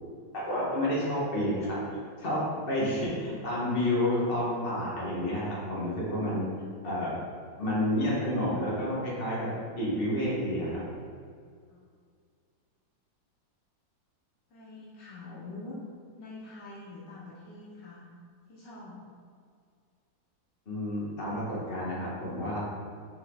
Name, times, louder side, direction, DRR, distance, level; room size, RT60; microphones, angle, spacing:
voice 1, 0.3-1.8 2.2-6.4 6.8-7.1 7.6-9.5 9.8-10.8 20.7-22.6, left 1 dB, 30° left, -7 dB, 1.8 m, -30 dB
voice 2, 14.5-15.8 16.1-18.1 18.5-19.0, left 2 dB, 70° left, -6 dB, 1.6 m, -45 dB
5.7 x 5.6 x 4.0 m, 2.1 s
omnidirectional pair, 2.1 m